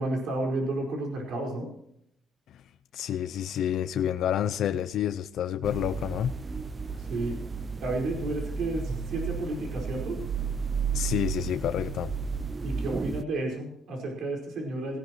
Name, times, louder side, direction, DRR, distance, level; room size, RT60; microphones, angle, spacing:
voice 1, 0.0-1.7 7.0-7.4 7.8-10.2 12.6-15.0, right 2 dB, 60° right, 4.7 m, -32 dB
voice 2, 2.9-6.3 10.9-12.1, left 10 dB, 65° left, 0.5 m, -29 dB
sound 1, 5.6-13.2, right 5 dB, 25° right, 0.4 m, -33 dB
18.0 x 14.5 x 3.1 m
cardioid pair, 155°, 0 cm